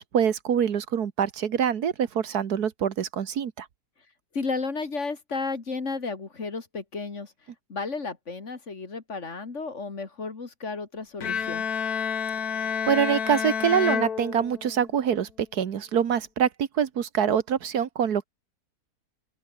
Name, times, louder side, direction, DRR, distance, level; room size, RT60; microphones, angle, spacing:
voice 1, 0.0-3.7 12.6-18.2, right 8 dB, 75° right, 1.8 m, -25 dB
voice 2, 4.3-7.3 7.7-11.7, left 4 dB, 45° left, 2.5 m, -33 dB
Bowed string instrument, 11.2-14.9, left 7 dB, 65° left, 2.1 m, -29 dB
open air
omnidirectional pair, 1.7 m